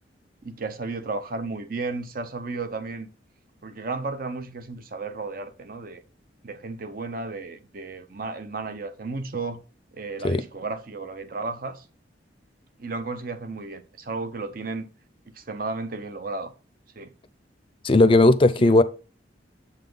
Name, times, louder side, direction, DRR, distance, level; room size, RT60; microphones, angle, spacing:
voice 1, 0.4-3.1 3.6-6.0 6.4-9.6 9.9-11.8 12.8-14.9 15.3-16.5 17.0-17.1 18.6-18.8, right 3 dB, 50° right, 0.8 m, -33 dB
voice 2, 17.8-18.8, left 2 dB, 30° left, 0.6 m, -16 dB
7.8 x 5.7 x 3.8 m
head